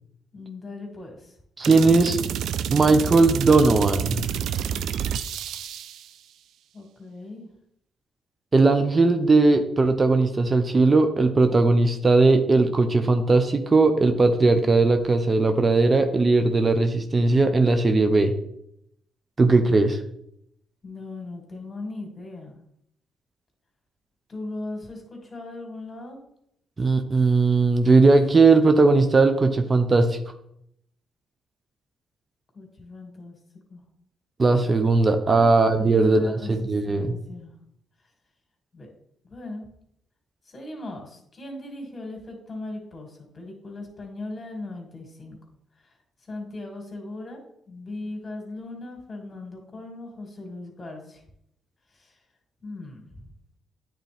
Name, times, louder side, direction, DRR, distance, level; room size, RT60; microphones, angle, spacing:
voice 1, 0.3-1.3 6.7-7.5 20.8-22.5 24.3-26.2 32.5-33.4 33.7-33.8 35.3-37.5 38.7-38.9 39.2-39.7 40.5-45.4 45.8-45.9 46.3-47.4 47.7-51.2 51.9-52.2 52.6-53.3, left 2 dB, 40° left, 2 dB, 2.3 m, -38 dB
voice 2, 1.6-2.2 2.7-4.2 8.5-18.3 19.4-20.0 26.8-30.2 34.4-37.2, right 3 dB, 35° right, 7 dB, 0.7 m, -19 dB
sound 1, 1.6-6.1, right 9 dB, 75° right, 0.3 m, -29 dB
9.0 x 3.8 x 3.5 m, 0.74 s
supercardioid pair, 50°, 0 cm